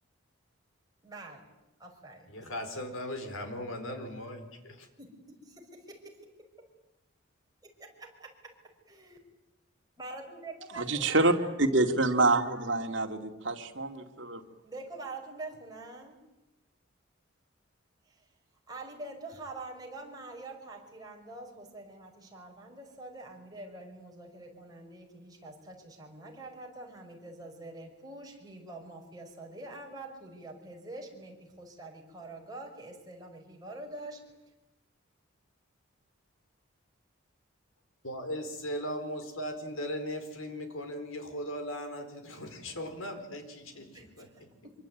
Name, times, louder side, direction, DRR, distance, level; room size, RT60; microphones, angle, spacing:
voice 1, 1.0-1.4 1.8-2.4 5.0-5.4 6.0-6.3 6.6-6.7 7.8-8.5 8.9-9.2 10.0-11.6 14.6-16.1 18.1-18.2 18.7-34.2 43.7-44.8, right 2 dB, 20° right, 1 dB, 5.5 m, -45 dB
voice 2, 2.3-4.9 38.0-43.9 44.2-44.3, equal, 85° left, 7 dB, 4.6 m, -38 dB
voice 3, 10.8-11.3 11.6-14.4, right 2 dB, 60° right, 4 dB, 2.5 m, -26 dB
25.5 x 24.0 x 9.4 m, 0.97 s
head